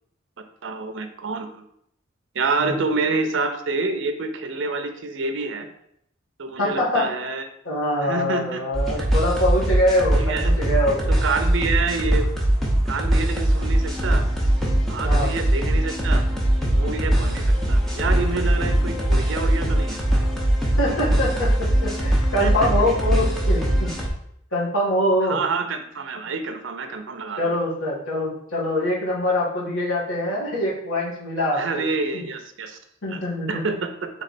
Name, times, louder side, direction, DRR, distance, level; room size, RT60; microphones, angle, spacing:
voice 1, 0.6-1.6 2.3-5.7 6.4-7.4 8.0-8.6 9.0-9.1 10.1-10.5 11.2-12.3 12.9-14.2 14.9-16.3 16.7-20.0 22.4-22.7 25.2-27.6 31.5-32.8 33.1-33.2 33.5-34.1, right 4 dB, 65° right, 7 dB, 0.5 m, -27 dB
voice 2, 6.6-7.1 7.7-11.3 15.0-15.3 20.8-23.9 24.5-25.4 27.4-31.9 32.1-32.2 33.0-33.6, left 1 dB, 85° left, -5 dB, 1.6 m, -24 dB
sound 1, 8.7-24.1, right 1 dB, ahead, 0.7 m, -21 dB
3.5 x 3.2 x 4.1 m, 0.73 s
head